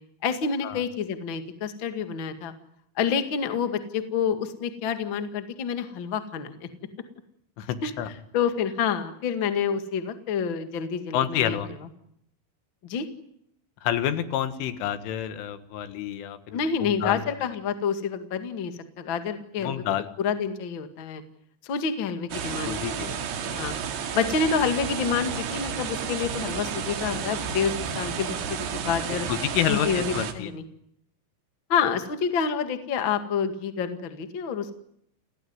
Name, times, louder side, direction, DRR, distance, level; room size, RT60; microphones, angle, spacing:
voice 1, 0.2-2.5 3.0-6.7 7.8-7.9 8.3-11.6 12.8-13.1 16.5-18.7 19.0-19.8 20.2-21.2 21.6-22.7 23.4-23.7 24.1-29.3 29.7-30.6 31.7-34.7, left 6 dB, 45° left, 8 dB, 1.6 m, -28 dB
voice 2, 7.6-8.1 11.1-11.7 13.8-17.2 19.6-20.1 22.5-23.2 29.3-30.5, left 10 dB, 85° left, 11 dB, 4.2 m, -29 dB
sound 1, 22.3-30.3, right 7 dB, 65° right, 4.2 m, -32 dB
29.0 x 18.0 x 9.6 m, 0.74 s
omnidirectional pair, 5.5 m